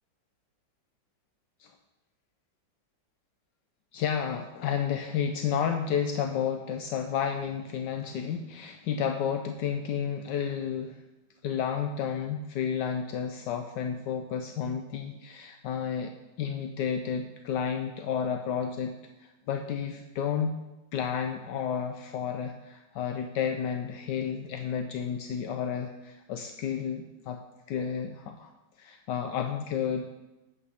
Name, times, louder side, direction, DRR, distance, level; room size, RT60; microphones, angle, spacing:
voice 1, 3.9-11.0 11.4-16.1 16.4-20.6 20.9-27.4 27.7-28.5 28.8-30.1, left 7 dB, 75° left, 5 dB, 1.2 m, -31 dB
8.4 x 5.4 x 6.3 m, 1.0 s
omnidirectional pair, 2.0 m